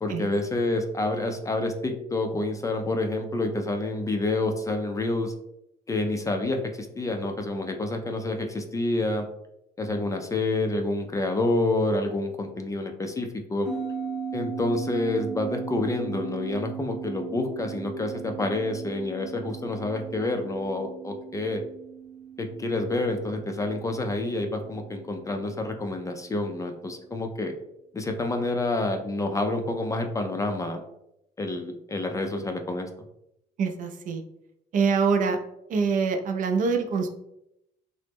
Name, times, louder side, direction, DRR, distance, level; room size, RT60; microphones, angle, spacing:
voice 1, 0.0-5.3 5.9-9.3 9.8-13.7 14.3-21.6 22.4-27.6 27.9-30.8 31.4-32.9, left 2 dB, 20° left, 5 dB, 0.3 m, -28 dB
sound 1, 13.6-26.4, right 7 dB, ahead, 0.8 m, -38 dB
voice 2, 33.6-34.2 34.7-35.4 35.7-37.1, right 5 dB, 50° right, 6 dB, 0.4 m, -24 dB
2.9 x 2.0 x 3.4 m, 0.82 s
cardioid pair, 110°, 17 cm